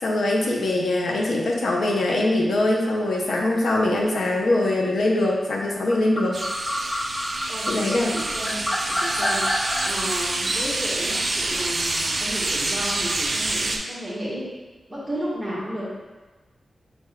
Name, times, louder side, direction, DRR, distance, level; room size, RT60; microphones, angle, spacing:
voice 1, 0.0-6.4 7.7-8.1, left 2 dB, 80° left, -1 dB, 0.6 m, -22 dB
sound 1, 5.9-9.9, left 1 dB, 20° left, 0.4 m, -27 dB
sound 2, 6.3-13.8, right 2 dB, 40° right, 0.4 m, -27 dB
voice 2, 7.5-14.5 14.9-15.9, equal, 15° right, -8 dB, 1.4 m, -33 dB
5.9 x 3.4 x 2.2 m, 1.2 s
wide cardioid pair, 155°, 0 cm